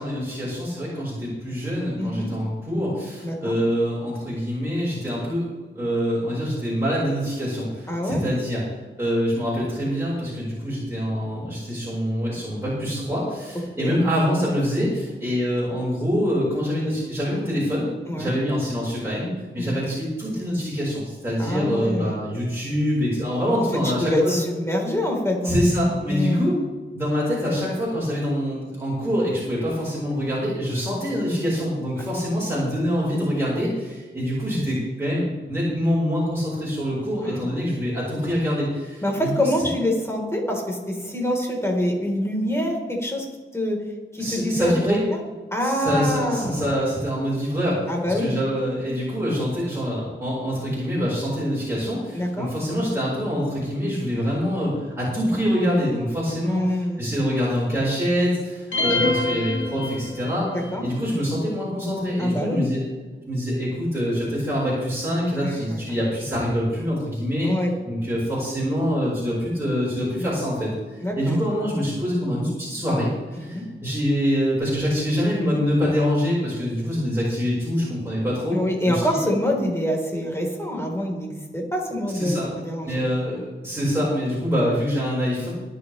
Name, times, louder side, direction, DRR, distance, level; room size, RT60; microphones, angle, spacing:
voice 1, 0.0-5.4 5.7-8.6 9.0-24.4 25.4-26.6 26.9-39.5 44.2-45.0 45.6-62.8 63.3-78.6 78.8-79.2 82.1-82.5 82.8-85.5, equal, 10° right, -7 dB, 5.0 m, -25 dB
voice 2, 2.0-2.3 3.2-3.5 7.9-8.2 13.8-14.0 18.1-18.3 19.6-19.8 21.4-22.2 23.8-25.6 26.1-26.5 37.2-37.5 39.0-43.2 43.5-43.8 44.1-45.2 45.5-46.7 47.9-48.4 52.1-52.5 56.4-57.0 58.7-58.9 60.5-60.8 62.2-62.6 65.4-65.8 67.4-67.7 71.0-71.4 73.4-73.6 78.5-83.0, left 1 dB, 15° left, -1 dB, 3.9 m, -25 dB
sound 1, 58.7-60.5, left 2 dB, 85° left, 1.9 m, -25 dB
24.5 x 8.4 x 3.3 m, 1.3 s
wide cardioid pair, 85°, 20 cm